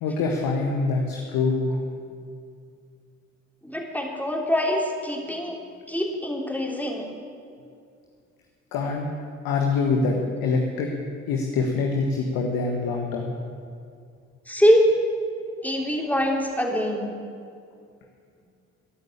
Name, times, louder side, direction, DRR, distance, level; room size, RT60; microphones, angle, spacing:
voice 1, 0.0-1.8 8.7-9.1 9.4-10.2 10.4-10.9 11.3-13.3, left 4 dB, 70° left, 2 dB, 1.6 m, -24 dB
voice 2, 3.6-5.6 5.9-7.0 14.5-14.9 15.6-17.1, equal, 5° left, 0 dB, 3.5 m, -23 dB
15.0 x 11.0 x 8.7 m, 2.3 s
hypercardioid pair, 40°, 36 cm